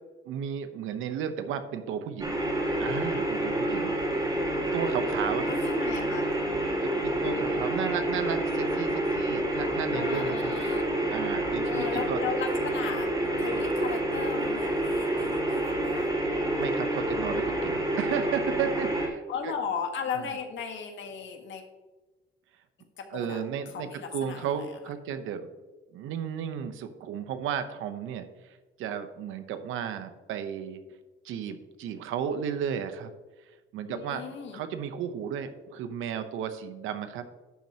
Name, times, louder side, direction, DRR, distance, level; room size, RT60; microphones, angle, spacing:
voice 1, 0.3-2.4 2.8-4.0 4.7-5.6 6.8-10.5 11.1-12.2 16.5-19.5 20.1-20.3 23.1-25.5 25.9-28.3 28.8-30.8 31.2-33.1 33.7-34.2 34.5-37.3, right 8 dB, 90° right, 9 dB, 0.9 m, -34 dB
sound 1, 2.2-19.1, right 1 dB, 20° right, 2.9 m, -28 dB
voice 2, 5.5-6.3 9.9-11.0 11.7-16.1 19.3-21.6 23.0-23.4 23.7-24.7 33.9-34.6, left 6 dB, 70° left, 4 dB, 1.5 m, -36 dB
11.5 x 7.3 x 2.9 m, 1.2 s
cardioid pair, 90°, 20 cm